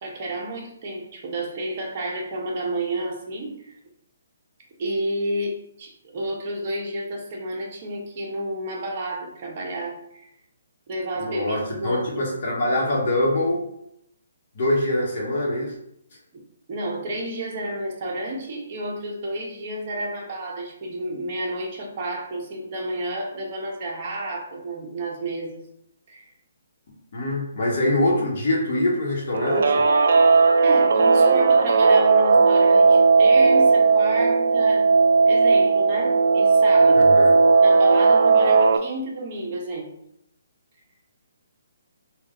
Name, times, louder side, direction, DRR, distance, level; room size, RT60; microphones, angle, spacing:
voice 1, 0.0-3.8 4.8-10.3 10.9-12.3 16.7-25.7 26.1-26.3 30.6-34.9 35.3-37.1 37.6-39.9, right 1 dB, 35° right, -1 dB, 1.0 m, -31 dB
voice 2, 11.2-13.7 14.5-15.7 27.1-29.9 36.9-37.4, left 1 dB, 50° left, -3 dB, 1.1 m, -24 dB
Guitar, 29.3-38.8, right 4 dB, 60° right, 0.4 m, -16 dB
3.7 x 2.4 x 3.7 m, 0.75 s
hypercardioid pair, 160°, 0 cm